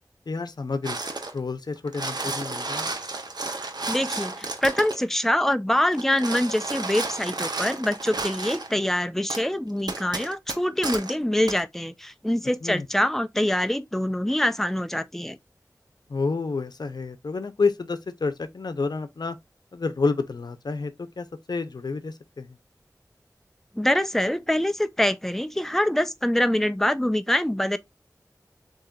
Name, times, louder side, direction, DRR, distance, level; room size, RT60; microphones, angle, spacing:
voice 1, 0.3-1.0 1.3-2.9 12.6-12.9 16.1-19.4 19.7-22.6, left 4 dB, 90° left, 0.7 m, -29 dB
sound 1, 0.8-1.4 1.8-5.0 5.9-8.7 9.3-9.4 9.9-11.1 11.5-11.6, right 3 dB, 85° right, 1.0 m, -32 dB
voice 2, 3.9-15.4 23.7-27.8, left 1 dB, 5° left, 0.6 m, -25 dB
7.2 x 3.0 x 2.4 m
wide cardioid pair, 50°, 7 cm